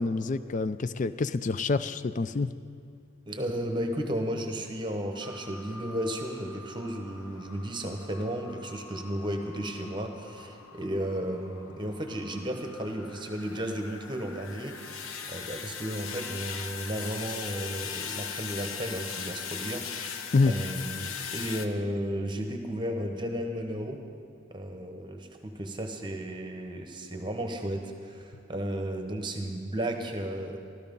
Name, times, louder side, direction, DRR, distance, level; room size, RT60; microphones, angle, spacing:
voice 1, 0.0-2.5 20.3-20.5, left 3 dB, 35° left, 14 dB, 0.3 m, -27 dB
voice 2, 3.3-24.0 24.5-30.6, right 1 dB, 20° right, 4 dB, 1.0 m, -34 dB
sound 1, 5.2-21.7, left 6 dB, 85° left, 0.8 m, -40 dB
14.0 x 13.0 x 5.3 m, 2.4 s
head